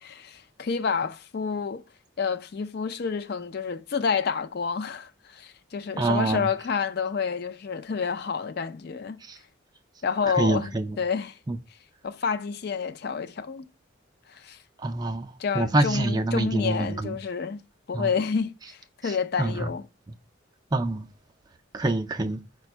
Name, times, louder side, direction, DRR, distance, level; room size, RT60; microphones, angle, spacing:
voice 1, 0.0-1.8 2.2-9.2 10.0-11.4 12.0-13.6 14.3-14.6 15.4-17.6 17.9-19.9, left 5 dB, 50° left, 0.4 m, -29 dB
voice 2, 6.0-6.5 9.2-9.4 10.3-11.0 11.5-11.6 14.8-15.3 15.5-17.2 17.9-18.1 19.0-19.7 20.7-21.0 21.7-22.4, right 2 dB, 20° right, 0.4 m, -26 dB
5.0 x 2.2 x 4.4 m
head